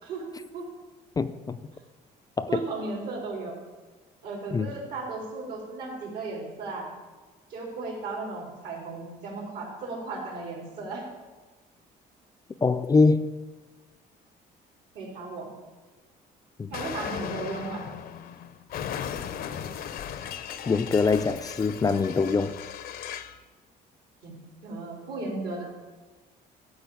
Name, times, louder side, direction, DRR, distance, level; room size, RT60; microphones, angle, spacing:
voice 1, 0.0-0.7 2.5-3.6 4.2-6.9 7.5-11.0 14.9-15.5 16.7-17.9 24.2-24.3 24.6-25.6, right 3 dB, 75° right, 3.7 m, -35 dB
voice 2, 1.2-1.6 2.4-2.6 4.5-4.7 12.6-13.3 16.6-16.7 20.7-22.6, left 4 dB, 20° left, 0.4 m, -23 dB
Explosion, 16.7-23.4, left 9 dB, 60° left, 0.7 m, -37 dB
12.5 x 4.4 x 8.3 m
cardioid pair, 110°, 17 cm